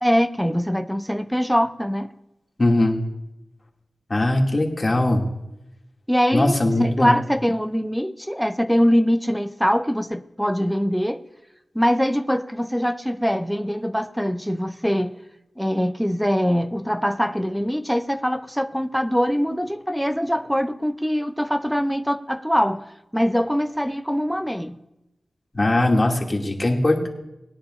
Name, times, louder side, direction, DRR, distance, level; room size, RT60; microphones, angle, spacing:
voice 1, 0.0-2.1 6.1-11.2 11.7-15.1 15.6-22.8 23.1-24.8, equal, ahead, 0.6 m, -23 dB
voice 2, 2.6-3.0 4.1-5.2 6.3-7.2 25.5-27.1, left 1 dB, 35° left, 2.4 m, -20 dB
20.5 x 10.0 x 2.5 m
wide cardioid pair, 60°, 0 cm